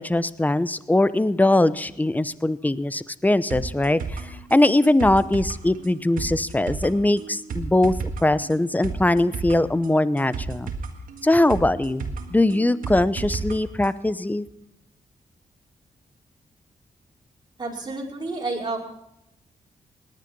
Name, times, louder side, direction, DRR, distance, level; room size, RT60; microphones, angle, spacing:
voice 1, 0.0-7.9 8.2-10.7 11.2-14.5, left 1 dB, 10° left, 15 dB, 0.8 m, -21 dB
sound 1, 3.5-13.5 13.8-13.9, right 4 dB, 80° right, 1.7 m, -33 dB
voice 2, 17.6-18.8, right 3 dB, 30° right, -2 dB, 4.9 m, -30 dB
18.5 x 10.5 x 5.4 m, 0.80 s
cardioid pair, 60°, 14 cm